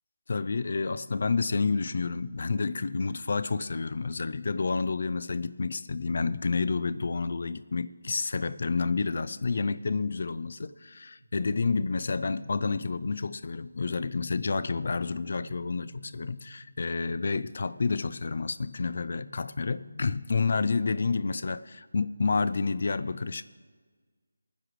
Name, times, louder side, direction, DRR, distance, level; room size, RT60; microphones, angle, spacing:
voice 1, 0.3-21.6 21.9-23.4, left 4 dB, 40° left, 15 dB, 0.4 m, -29 dB
sound 1, 11.2-13.1 14.9-16.8 18.6-20.5, equal, 70° right, 3.7 m, -50 dB
28.0 x 9.8 x 3.2 m, 1.5 s
figure-of-eight pair, 180°, 0 cm